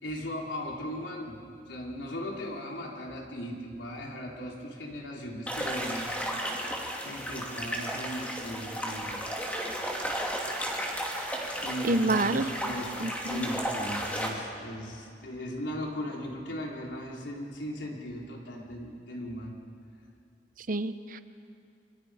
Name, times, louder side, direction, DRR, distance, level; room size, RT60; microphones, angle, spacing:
voice 1, 0.0-6.2 7.0-9.3 11.6-19.6, equal, 90° left, -1 dB, 3.8 m, -38 dB
sound 1, 5.5-14.3, equal, 10° left, 2.7 m, -34 dB
voice 2, 11.8-12.4 13.0-13.5 20.7-21.2, right 2 dB, 50° right, 11 dB, 0.9 m, -28 dB
27.0 x 24.0 x 5.0 m, 2.4 s
head